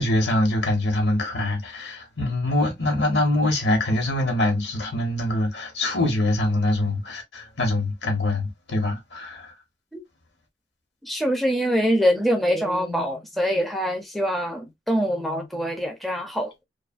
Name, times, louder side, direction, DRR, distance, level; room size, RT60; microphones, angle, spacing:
voice 1, 0.0-9.5, left 1 dB, 70° left, 1.0 m, -24 dB
voice 2, 11.0-16.5, equal, ahead, 0.4 m, -24 dB
2.5 x 2.3 x 2.4 m
head